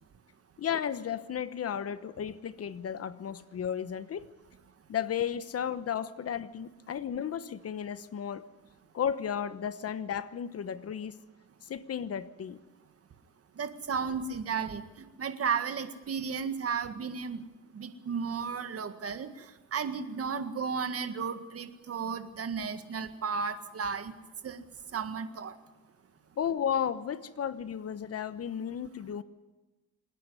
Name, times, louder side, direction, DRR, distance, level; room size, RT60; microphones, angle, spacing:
voice 1, 0.6-4.3 4.9-8.4 8.9-11.2 11.6-12.6 26.4-29.2, left 8 dB, 55° left, 14 dB, 1.1 m, -34 dB
voice 2, 13.6-14.8 15.2-17.4 17.7-19.5 19.7-24.1 24.4-24.6 24.9-25.5, right 6 dB, 50° right, 9 dB, 1.8 m, -34 dB
26.5 x 10.0 x 9.7 m, 1.2 s
cardioid pair, 90°, 30 cm